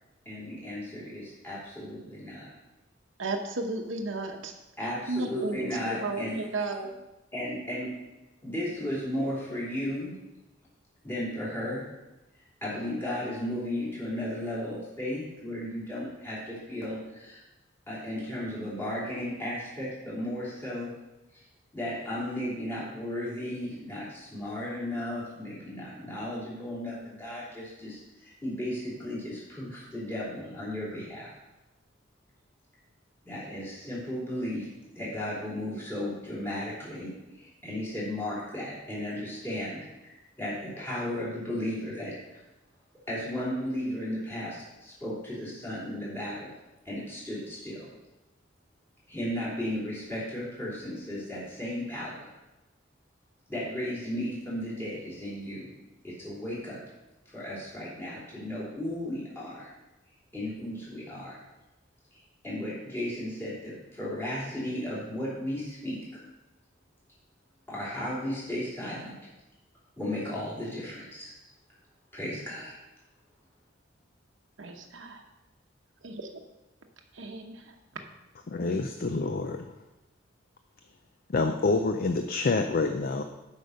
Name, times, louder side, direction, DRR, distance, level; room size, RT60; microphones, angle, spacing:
voice 1, 0.2-2.5 4.8-6.4 7.3-7.9 8.4-10.1 11.0-11.9 12.6-17.4 17.9-20.9 21.3-21.4 21.7-31.3 33.2-34.7 34.9-37.1 37.4-42.4 43.1-46.5 46.8-47.9 49.1-52.3 53.5-55.7 56.0-56.8 57.3-59.7 60.3-61.4 62.4-66.0 67.7-69.1 70.0-71.3 72.1-72.7, left 1 dB, 10° left, -8 dB, 3.1 m, -35 dB
voice 2, 3.2-4.5 5.1-7.0 74.6-75.2 76.0-76.3 77.1-77.6, right 3 dB, 70° right, 3 dB, 0.9 m, -34 dB
voice 3, 78.5-79.7 81.3-83.2, left 3 dB, 50° left, 6 dB, 0.5 m, -27 dB
8.1 x 5.4 x 6.4 m, 0.99 s
head